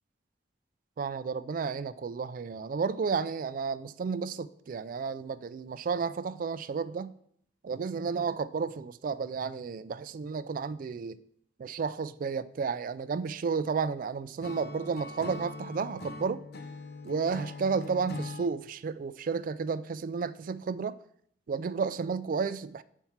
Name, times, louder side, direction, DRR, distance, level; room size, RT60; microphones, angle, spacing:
voice 1, 1.0-7.1 7.6-11.2 11.6-16.4 17.0-21.0 21.5-22.8, right 5 dB, 50° right, 0.3 m, -32 dB
Acoustic guitar / Strum, 14.4-18.5, left 3 dB, 60° left, 0.7 m, -42 dB
7.2 x 4.5 x 5.7 m
head